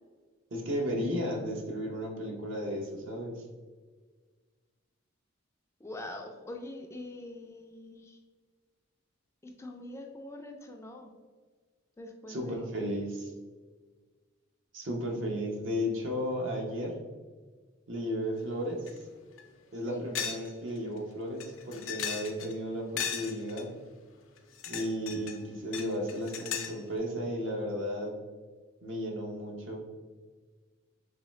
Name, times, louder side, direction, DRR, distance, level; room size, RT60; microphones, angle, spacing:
voice 1, 0.5-3.4 12.3-13.3 14.7-16.9 17.9-18.9 19.7-23.7 24.7-28.2 28.8-29.9, equal, 65° right, 1 dB, 0.8 m, -34 dB
voice 2, 5.8-8.2 9.4-11.1 12.0-12.7 19.8-20.2, left 1 dB, 15° left, 3 dB, 0.3 m, -44 dB
sound 1, 18.9-19.0 19.4-19.5 20.2-20.5 20.8-20.9 21.4-22.5 23.0-23.6 24.4-25.4 25.7-26.8, left 8 dB, 70° left, 0.5 m, -36 dB
3.7 x 3.1 x 3.1 m, 1.5 s
head